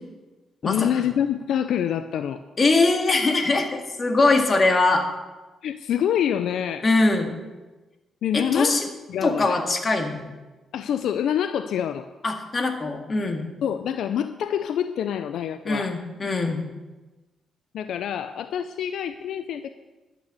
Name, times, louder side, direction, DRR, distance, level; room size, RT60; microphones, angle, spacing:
voice 1, 0.6-2.4 5.6-6.9 8.2-8.8 9.1-9.6 10.7-12.1 13.6-15.9 17.7-19.7, left 9 dB, 80° left, 11 dB, 0.5 m, -26 dB
voice 2, 2.6-5.1 6.8-7.4 8.3-8.9 9.2-10.3 12.2-13.5 15.7-16.6, left 3 dB, 40° left, 4 dB, 2.0 m, -22 dB
12.0 x 6.9 x 8.3 m, 1.2 s
cardioid pair, 75°, 0 cm